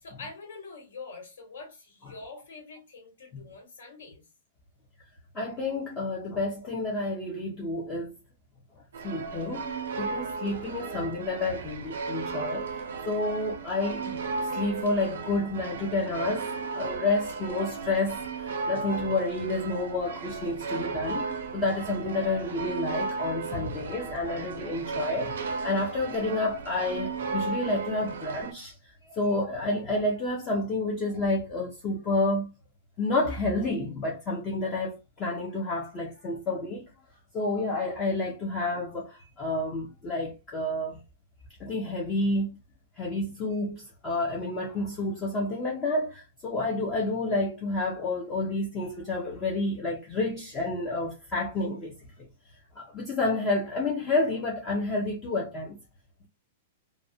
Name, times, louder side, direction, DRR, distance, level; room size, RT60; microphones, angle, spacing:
voice 1, 0.0-4.3, left 4 dB, 80° left, 1.4 m, -45 dB
voice 2, 5.3-8.2 9.0-12.7 13.1-25.3 25.6-32.5 33.0-36.8 37.3-41.0 41.6-42.6 43.0-51.9 52.8-55.8, left 2 dB, 20° left, 0.4 m, -30 dB
sound 1, 8.9-28.5, right 4 dB, 85° right, 0.5 m, -35 dB
2.4 x 2.0 x 2.5 m
supercardioid pair, 180°, 0 cm